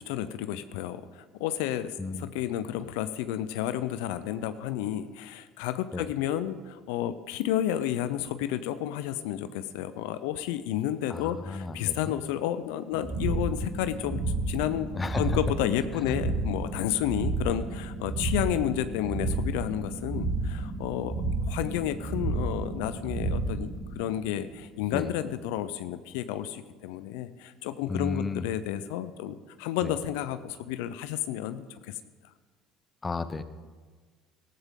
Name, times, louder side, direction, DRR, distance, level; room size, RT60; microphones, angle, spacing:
voice 1, 0.0-14.9 15.2-32.0, left 11 dB, 80° left, 12 dB, 0.6 m, -31 dB
voice 2, 11.1-12.1 14.9-15.2 16.0-16.2 24.9-25.1 27.9-28.5 29.8-29.9 33.0-33.4, left 3 dB, 20° left, 12 dB, 0.9 m, -33 dB
sound 1, 12.9-24.7, right 3 dB, 45° right, 2.6 m, -32 dB
14.5 x 14.0 x 3.8 m, 1.5 s
supercardioid pair, 85°, 0 cm